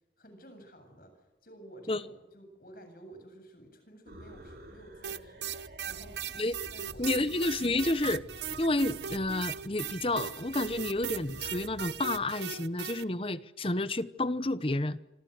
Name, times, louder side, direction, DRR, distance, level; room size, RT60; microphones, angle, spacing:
voice 1, 0.2-5.5 5.9-6.4 6.7-7.2, right 1 dB, 55° left, 8.0 m, -52 dB
sound 1, 4.1-12.2, equal, 60° right, 5.8 m, -50 dB
sound 2, 5.0-13.0, right 8 dB, 80° right, 1.1 m, -38 dB
voice 2, 7.0-8.2 8.6-15.0, left 2 dB, 30° left, 0.9 m, -30 dB
27.5 x 26.0 x 6.7 m
head